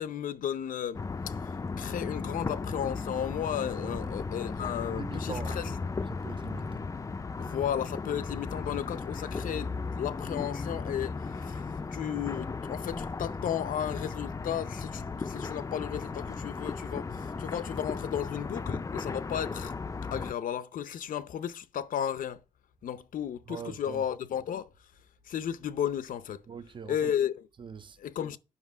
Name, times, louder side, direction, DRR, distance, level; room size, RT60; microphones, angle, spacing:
voice 1, 0.0-5.6 7.4-19.7 20.1-22.4 22.8-24.7 25.2-26.4 26.9-27.4 28.0-28.4, left 9 dB, 85° left, 0.7 m, -34 dB
sound 1, 0.9-20.3, left 4 dB, 25° left, 0.4 m, -36 dB
voice 2, 3.8-4.1 4.9-5.7 6.0-6.8 23.5-24.1 26.5-27.1 27.5-28.0, right 6 dB, 35° right, 0.5 m, -43 dB
9.8 x 5.6 x 5.6 m
wide cardioid pair, 130°, 14 cm